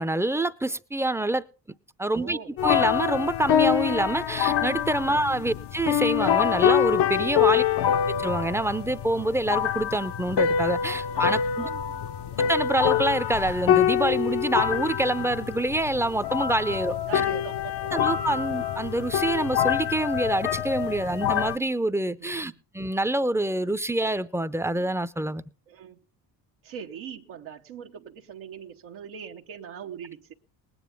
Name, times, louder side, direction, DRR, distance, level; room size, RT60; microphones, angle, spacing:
voice 1, 0.0-1.4 2.0-7.6 8.2-11.7 12.4-17.0 17.9-25.5, right 1 dB, 5° right, 0.6 m, -26 dB
voice 2, 2.1-2.6 5.1-5.3 7.5-7.9 11.1-12.0 16.7-17.9 22.2-22.6 25.7-26.0 26.6-30.3, right 8 dB, 80° right, 1.2 m, -41 dB
sound 1, 2.6-21.6, left 9 dB, 55° left, 0.8 m, -25 dB
19.5 x 9.6 x 3.5 m
supercardioid pair, 60°, 48 cm